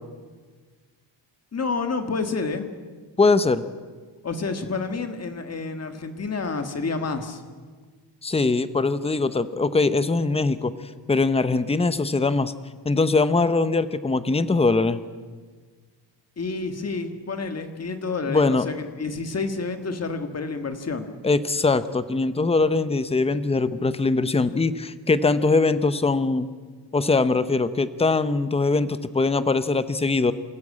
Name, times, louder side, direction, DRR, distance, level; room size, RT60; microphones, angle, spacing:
voice 1, 1.5-2.7 4.2-7.4 16.4-21.1, left 4 dB, 35° left, 7 dB, 1.8 m, -29 dB
voice 2, 3.2-3.7 8.2-10.7 11.1-12.5 12.8-15.0 18.3-18.7 21.2-26.5 26.9-30.3, left 3 dB, 15° left, 13 dB, 0.7 m, -22 dB
28.0 x 14.0 x 8.6 m, 1.5 s
wide cardioid pair, 165°, 45 cm